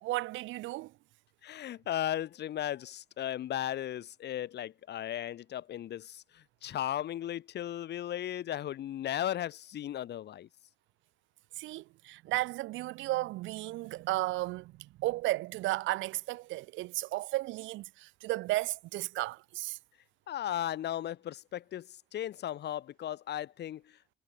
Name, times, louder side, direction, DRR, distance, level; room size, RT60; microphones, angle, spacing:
voice 1, 0.0-0.9 11.6-19.8, right 18 dB, 80° right, 0.6 m, -34 dB
voice 2, 1.4-10.5 20.3-24.0, left 11 dB, 60° left, 0.9 m, -36 dB
supercardioid pair, 70°, 19 cm